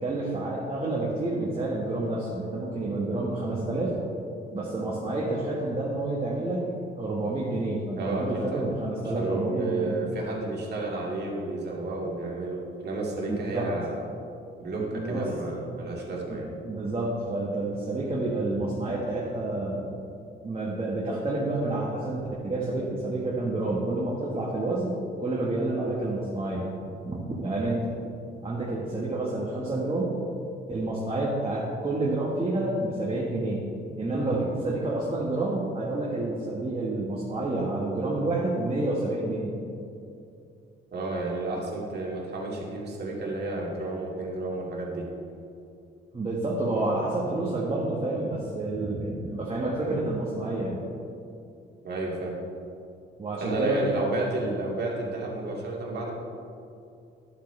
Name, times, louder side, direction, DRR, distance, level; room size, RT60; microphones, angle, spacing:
voice 1, 0.0-3.9 4.5-6.7 7.0-9.9 13.3-13.7 14.9-15.3 16.3-16.4 16.6-19.9 20.4-27.9 28.4-30.1 30.7-33.6 34.0-39.6 46.1-50.8 53.2-54.1, right 2 dB, 30° right, -5 dB, 1.5 m, -29 dB
voice 2, 8.0-8.7 9.1-14.0 14.6-16.5 40.9-45.1 51.8-52.4 53.4-56.1, right 2 dB, 55° right, -3 dB, 2.3 m, -31 dB
11.0 x 8.1 x 3.3 m, 2.5 s
cardioid pair, 90°, 20 cm